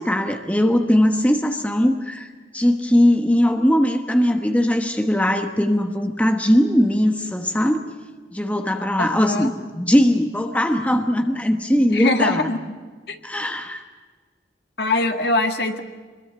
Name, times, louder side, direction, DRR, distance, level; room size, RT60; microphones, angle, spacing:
voice 1, 0.0-7.8 8.3-12.5 13.2-13.8, equal, 10° left, 5 dB, 1.2 m, -20 dB
voice 2, 9.0-9.5 11.9-12.6 13.1-13.2 14.8-15.8, left 2 dB, 65° left, 6 dB, 1.8 m, -22 dB
24.0 x 21.5 x 8.0 m, 1.5 s
head